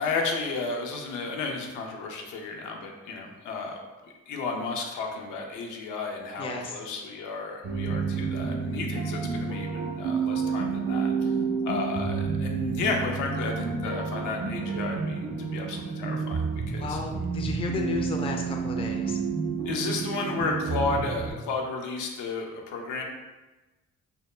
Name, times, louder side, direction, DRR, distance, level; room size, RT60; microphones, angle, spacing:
voice 1, 0.0-3.8 4.3-11.1 11.6-15.3 15.5-16.4 16.7-17.0 19.6-23.0, left 4 dB, 90° left, 1 dB, 0.5 m, -32 dB
voice 2, 6.4-6.8 16.8-19.2, left 4 dB, 20° left, 1 dB, 0.3 m, -33 dB
sound 1, 7.6-21.3, right 5 dB, 40° right, 0.5 m, -30 dB
2.1 x 2.0 x 3.0 m, 1.2 s
cardioid pair, 90°, 30 cm